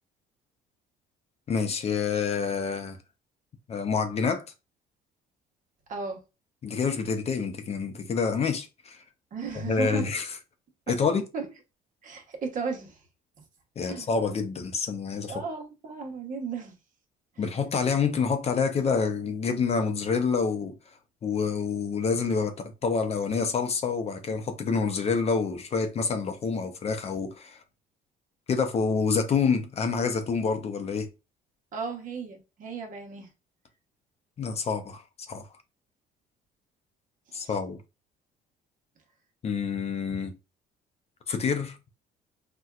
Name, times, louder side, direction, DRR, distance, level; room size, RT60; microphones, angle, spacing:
voice 1, 1.5-3.0 3.7-4.4 6.6-9.0 9.5-10.3 10.9-11.3 13.8-15.4 17.4-20.8 21.2-27.6 28.5-31.1 34.4-35.0 35.3-35.5 37.3-37.8 39.4-40.3 41.3-41.8, left 5 dB, 40° left, 0.5 m, -27 dB
voice 2, 9.3-10.1 11.3-11.5 12.0-13.0 13.8-14.1 15.3-16.8 17.4-17.5 31.7-33.3 37.3-37.5, right 4 dB, 50° right, 1.0 m, -35 dB
4.1 x 2.2 x 2.3 m
cardioid pair, 110°, 17 cm